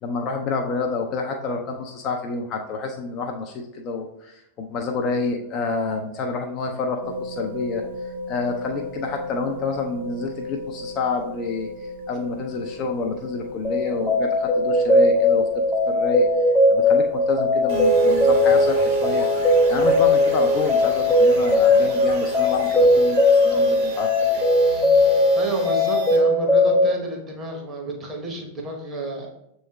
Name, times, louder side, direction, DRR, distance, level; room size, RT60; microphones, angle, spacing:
voice 1, 0.0-7.8 8.3-15.5 15.9-16.3 16.7-19.3 19.7-24.4, left 4 dB, 35° left, 2 dB, 0.4 m, -28 dB
sound 1, 7.0-23.9, left 1 dB, 75° right, 0.8 m, -38 dB
sound 2, 13.6-26.9, left 2 dB, 5° left, 0.8 m, -19 dB
sound 3, 17.7-26.2, right 6 dB, 50° right, 1.4 m, -31 dB
voice 2, 25.4-29.3, right 2 dB, 20° right, -1 dB, 0.9 m, -30 dB
6.9 x 3.1 x 2.2 m, 0.81 s
figure-of-eight pair, 90°, 0 cm